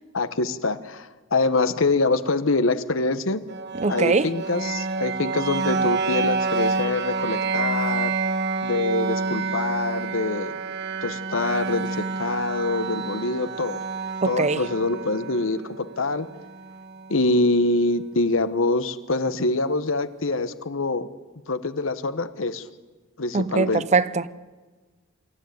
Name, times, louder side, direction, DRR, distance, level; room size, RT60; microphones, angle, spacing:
voice 1, 0.1-3.4 3.9-8.1 8.6-10.6 11.0-13.8 14.2-16.3 17.1-21.1 21.5-22.7 23.2-23.8, left 2 dB, 70° left, 1.1 m, -25 dB
sound 1, 3.5-17.4, right 4 dB, 55° right, 1.3 m, -28 dB
voice 2, 3.8-4.3 14.2-14.6 23.3-24.2, right 4 dB, 35° right, 0.6 m, -21 dB
25.5 x 13.0 x 9.3 m
head